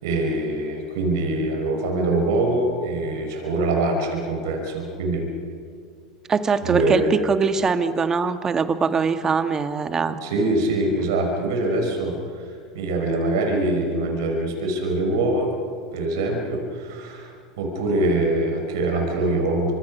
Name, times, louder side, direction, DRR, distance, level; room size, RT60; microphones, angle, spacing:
voice 1, 0.0-5.3 6.6-7.1 10.2-15.5 15.9-19.7, right 2 dB, 65° right, 2 dB, 5.4 m, -24 dB
voice 2, 6.3-10.1, right 5 dB, 25° right, 9 dB, 1.7 m, -22 dB
30.0 x 26.0 x 5.6 m, 2.2 s
hypercardioid pair, 85°, 2 cm